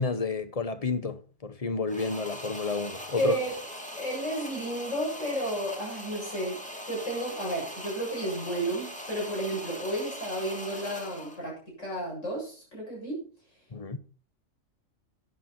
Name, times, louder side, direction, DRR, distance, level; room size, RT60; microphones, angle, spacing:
voice 1, 0.0-3.4 13.7-14.0, left 4 dB, 30° left, 0.9 m, -30 dB
sound 1, 1.9-11.5, equal, 5° left, 2.5 m, -41 dB
voice 2, 3.2-3.5 4.0-13.2, right 1 dB, 65° left, 7.9 m, -32 dB
12.5 x 10.5 x 4.3 m
omnidirectional pair, 1.4 m